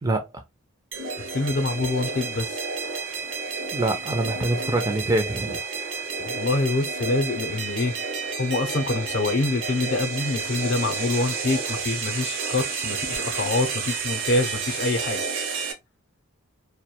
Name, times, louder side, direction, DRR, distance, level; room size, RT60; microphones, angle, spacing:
voice 1, 0.0-0.4 3.7-5.6, right 2 dB, 15° right, 0.3 m, -25 dB
sound 1, 0.9-15.7, right 4 dB, 60° right, 0.6 m, -30 dB
voice 2, 1.2-2.6 6.2-7.9 8.4-15.2, left 2 dB, 50° left, 0.5 m, -26 dB
2.2 x 2.1 x 2.7 m
head